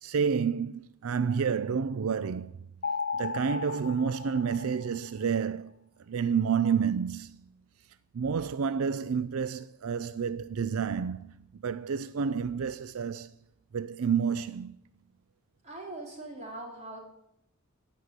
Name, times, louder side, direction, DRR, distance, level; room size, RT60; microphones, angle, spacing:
voice 1, 0.0-2.7 3.1-5.7 6.1-7.4 8.1-13.3 13.7-14.8, right 6 dB, 85° right, 0.5 m, -29 dB
sound 1, 2.8-5.3, left 5 dB, 50° left, 1.7 m, -35 dB
voice 2, 15.6-17.0, right 2 dB, 35° right, 3.9 m, -41 dB
15.0 x 6.3 x 9.8 m
head